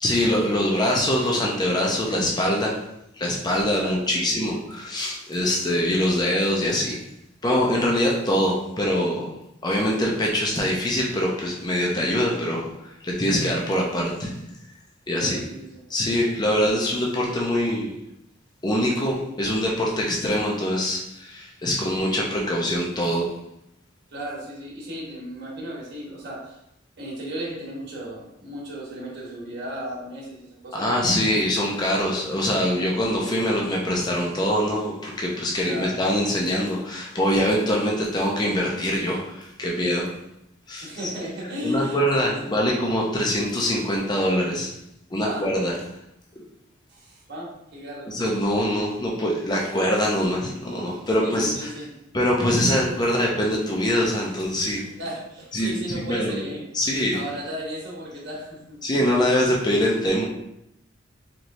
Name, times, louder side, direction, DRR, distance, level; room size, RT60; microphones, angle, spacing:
voice 1, 0.0-2.8 3.2-7.0 7.4-9.2 9.6-12.6 13.0-14.3 15.1-15.4 15.9-17.9 18.6-23.3 30.7-40.1 40.7-41.1 41.6-44.7 45.1-45.7 48.1-51.7 52.1-54.9 55.5-56.4 56.7-57.2 58.8-60.3, equal, 20° left, -2 dB, 0.5 m, -23 dB
voice 2, 3.7-4.3 15.1-15.8 24.1-26.6 27.0-31.1 35.7-35.9 40.8-42.6 45.2-45.5 46.9-48.1 51.1-51.9 55.0-56.6 57.1-58.8, equal, 60° right, -5 dB, 1.2 m, -35 dB
4.3 x 3.1 x 2.6 m, 0.81 s
head